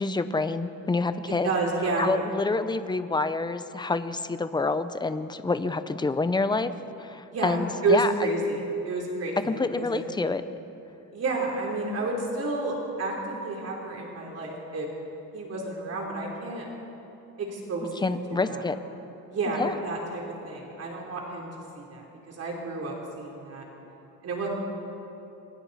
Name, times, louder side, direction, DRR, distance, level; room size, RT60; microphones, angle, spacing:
voice 1, 0.0-1.5 2.0-6.7 7.0-8.3 9.4-10.4 18.0-18.8 19.6-19.8, left 3 dB, 15° left, 11 dB, 0.7 m, -27 dB
voice 2, 1.4-2.1 7.3-9.4 9.8-10.0 11.1-14.9 15.3-16.7 17.4-18.1 18.4-18.6 19.3-21.5 21.8-23.6 24.2-24.5, right 3 dB, 50° right, -1 dB, 3.5 m, -30 dB
27.5 x 24.0 x 4.2 m, 3.0 s
cardioid pair, 150°, 33 cm